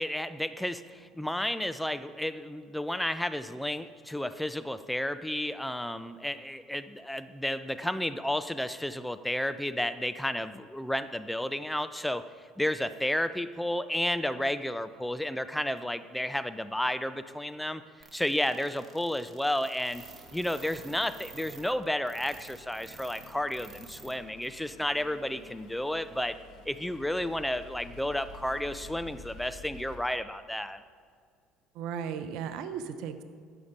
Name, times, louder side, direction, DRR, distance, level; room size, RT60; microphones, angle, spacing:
voice 1, 0.0-12.2 12.6-17.8 18.1-20.0 20.3-26.4 26.7-30.8, left 1 dB, 5° left, 12 dB, 0.6 m, -32 dB
sound 1, 18.0-24.1 24.4-24.5 25.0-25.1, right 3 dB, 30° right, 2.2 m, -49 dB
sound 2, 23.3-30.0, left 3 dB, 65° left, 1.9 m, -50 dB
voice 2, 31.7-33.2, right 7 dB, 65° right, 10 dB, 0.8 m, -36 dB
14.5 x 7.0 x 5.2 m, 2.1 s
hypercardioid pair, 65°, 0 cm